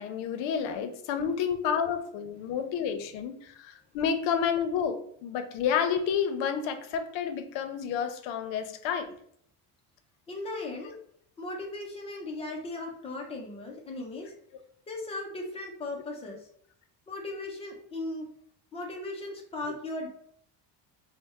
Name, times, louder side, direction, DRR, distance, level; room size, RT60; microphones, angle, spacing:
voice 1, 0.0-9.1, left 7 dB, 75° left, 8 dB, 0.6 m, -30 dB
voice 2, 10.3-11.0 11.4-14.3 14.9-16.4 17.1-18.3 18.7-20.1, left 2 dB, 15° left, 0 dB, 0.3 m, -37 dB
4.0 x 2.1 x 3.4 m, 0.67 s
cardioid pair, 180°, 44 cm